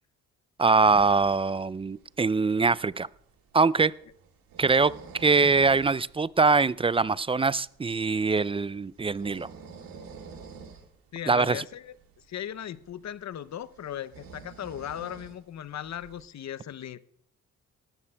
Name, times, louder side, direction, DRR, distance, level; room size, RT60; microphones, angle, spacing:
voice 1, 0.6-3.1 3.5-3.9 4.6-9.5 11.3-11.6, right 4 dB, 15° right, 20 dB, 0.3 m, -23 dB
sound 1, 0.8-16.2, right 5 dB, 80° right, 1.9 m, -50 dB
voice 2, 11.1-12.0 12.3-17.1, left 10 dB, 50° left, 17 dB, 0.7 m, -37 dB
18.5 x 13.5 x 2.3 m, 0.69 s
supercardioid pair, 50°, 35 cm